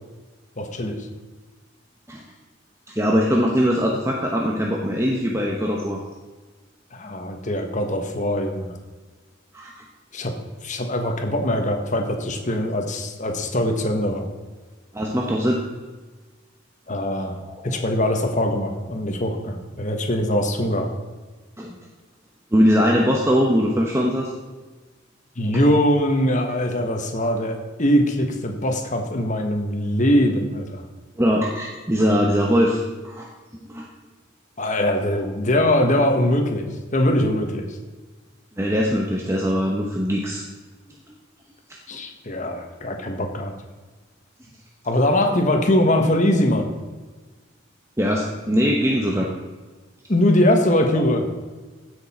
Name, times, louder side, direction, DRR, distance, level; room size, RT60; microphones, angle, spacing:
voice 1, 0.6-1.0 6.9-8.8 10.1-10.3 10.6-14.3 16.9-17.4 17.6-20.9 25.4-30.8 34.6-37.8 41.9-43.5 44.8-46.7 50.1-51.3, left 1 dB, 40° left, 4 dB, 1.3 m, -22 dB
voice 2, 2.9-6.0 9.5-9.7 14.9-15.6 17.4-17.8 21.6-21.8 22.5-24.3 31.2-33.3 33.7-33.9 38.6-40.4 48.0-49.3 50.9-51.0, equal, 15° right, -1 dB, 1.0 m, -21 dB
15.5 x 6.5 x 4.3 m, 1.3 s
head